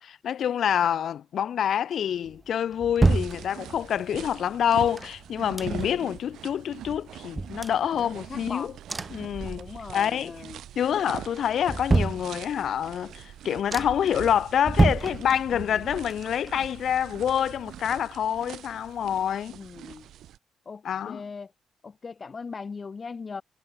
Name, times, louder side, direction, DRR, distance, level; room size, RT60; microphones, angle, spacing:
voice 1, 0.0-8.7 9.1-10.4 10.8-19.6 20.8-21.2, left 9 dB, 65° left, 4.2 m, -27 dB
sound 1, 2.3-4.0 4.7-6.1 6.5-6.6 6.8-8.5 8.9-10.1 10.4-10.9 11.3-12.8 13.3-13.4 13.7-14.2 14.6-15.8 16.1-17.9 18.2-18.3, right 3 dB, 20° right, 1.3 m, -29 dB
sound 2, 3.0-20.4, right 12 dB, 75° right, 3.4 m, -43 dB
voice 2, 5.6-6.0 7.9-8.7 9.6-10.6 19.6-20.0 20.7-21.5 21.8-23.4, left 5 dB, 35° left, 1.5 m, -39 dB
cardioid pair, 90°, 0 cm